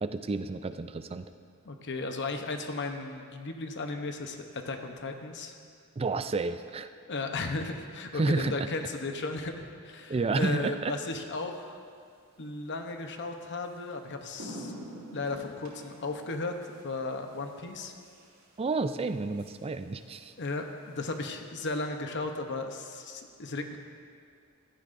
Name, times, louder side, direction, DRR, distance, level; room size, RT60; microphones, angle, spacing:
voice 1, 0.0-1.3 6.0-6.9 8.1-8.7 10.1-10.9 18.6-20.3, right 3 dB, 25° right, 10 dB, 0.4 m, -30 dB
voice 2, 1.6-5.6 7.1-11.8 12.4-14.7 15.1-16.5 16.8-17.9 20.4-23.8, left 3 dB, 55° left, 5 dB, 0.9 m, -35 dB
sound 1, 10.7-10.9 13.1-13.2 13.6-13.8 14.1-21.3, equal, 85° right, 2.5 m, -49 dB
16.0 x 12.5 x 2.6 m, 2.2 s
head